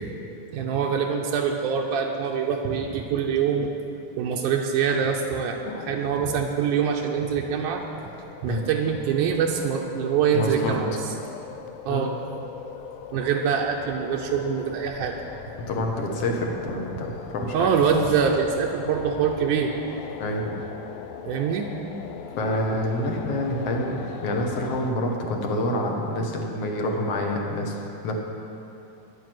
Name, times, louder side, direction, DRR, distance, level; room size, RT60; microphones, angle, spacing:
voice 1, 0.5-3.7 4.2-7.8 8.4-11.1 11.8-12.1 13.1-15.2 17.5-19.7 21.3-21.7, right 7 dB, 85° right, 0 dB, 2.2 m, -24 dB
sound 1, 5.6-24.9, left 7 dB, 80° left, 1.6 m, -40 dB
voice 2, 10.3-10.8 11.9-12.1 15.7-17.7 20.2-20.4 22.4-24.0 24.2-27.7 28.0-28.1, left 1 dB, 60° left, 1 dB, 2.0 m, -27 dB
10.5 x 9.3 x 7.7 m, 2.8 s
omnidirectional pair, 3.6 m